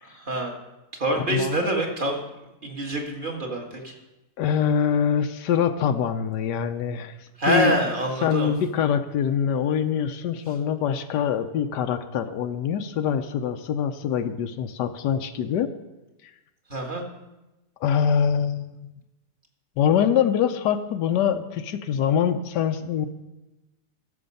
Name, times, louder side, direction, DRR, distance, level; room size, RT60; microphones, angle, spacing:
voice 1, 0.0-0.5 1.0-2.2 2.6-3.9 7.4-8.5 16.7-17.0, right 1 dB, 30° right, 1 dB, 1.9 m, -26 dB
voice 2, 1.3-1.7 4.4-7.2 7.5-7.7 8.2-15.7 17.8-18.9 19.8-23.1, left 8 dB, 90° left, 8 dB, 1.3 m, -24 dB
14.5 x 6.9 x 5.3 m, 1.0 s
omnidirectional pair, 1.8 m